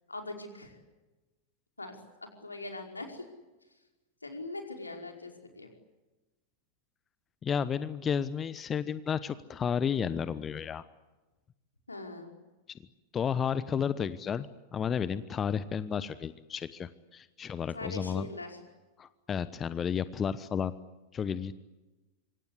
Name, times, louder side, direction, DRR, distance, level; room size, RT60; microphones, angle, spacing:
voice 1, 0.1-0.8 1.8-3.3 4.2-5.7 11.9-12.3 17.7-18.6, left 2 dB, 80° left, 3 dB, 5.0 m, -41 dB
voice 2, 7.4-10.8 12.7-12.8 13.1-18.3 19.0-20.7 21.1-21.5, left 7 dB, 25° left, 15 dB, 1.0 m, -32 dB
26.5 x 25.5 x 8.2 m, 1.1 s
figure-of-eight pair, 90°, 0 cm